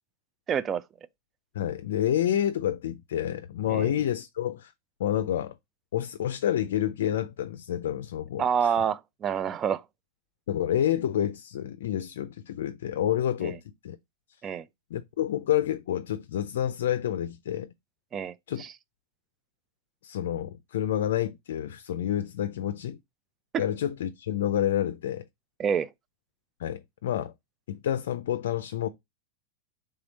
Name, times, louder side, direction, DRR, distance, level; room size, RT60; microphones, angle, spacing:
voice 1, 0.5-0.8 3.7-3.9 8.4-9.8 13.4-13.6 14.4-14.7 18.1-18.7 23.5-23.6 25.6-25.9, right 7 dB, 25° right, 0.4 m, -28 dB
voice 2, 1.5-4.7 5.0-5.5 5.9-8.7 10.5-14.0 14.9-17.7 18.5-18.7 20.0-23.0 23.6-25.2 26.6-27.3 27.7-28.9, left 11 dB, 75° left, 0.4 m, -29 dB
3.5 x 3.4 x 4.0 m
hypercardioid pair, 120°, 0 cm